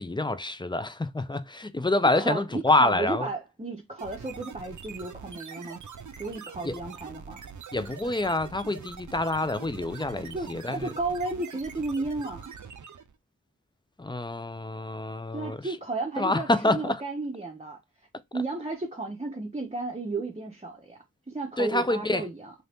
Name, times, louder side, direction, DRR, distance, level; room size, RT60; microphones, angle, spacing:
voice 1, 0.0-3.3 6.6-6.8 7.7-10.9 14.0-15.8 16.2-17.0 21.6-22.3, left 2 dB, 15° left, 0.3 m, -27 dB
voice 2, 2.1-5.8 6.2-7.5 10.3-12.5 15.3-17.8 18.3-22.5, right 3 dB, 20° right, 0.6 m, -33 dB
sound 1, 4.0-13.2, right 6 dB, 65° right, 0.5 m, -44 dB
2.7 x 2.6 x 3.4 m
wide cardioid pair, 50°, 32 cm